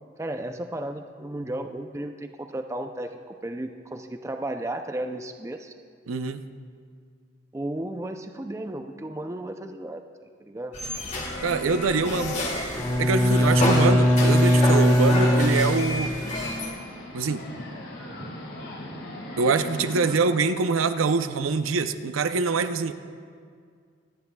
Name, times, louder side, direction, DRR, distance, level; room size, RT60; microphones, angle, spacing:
voice 1, 0.2-5.7 7.5-10.1 10.4-10.8 12.0-12.1, right 1 dB, 15° right, 6 dB, 0.4 m, -34 dB
voice 2, 6.1-6.4 11.4-12.4 12.9-16.1 17.1-17.4 19.4-22.9, right 4 dB, 90° right, 9 dB, 0.6 m, -24 dB
sound 1, 10.7-16.7, left 1 dB, 35° left, 1.4 m, -29 dB
sound 2, 10.8-20.2, left 1 dB, 65° left, 2.0 m, -40 dB
Bowed string instrument, 12.7-16.3, equal, 20° left, 1.1 m, -20 dB
25.5 x 9.5 x 2.3 m, 2.1 s
head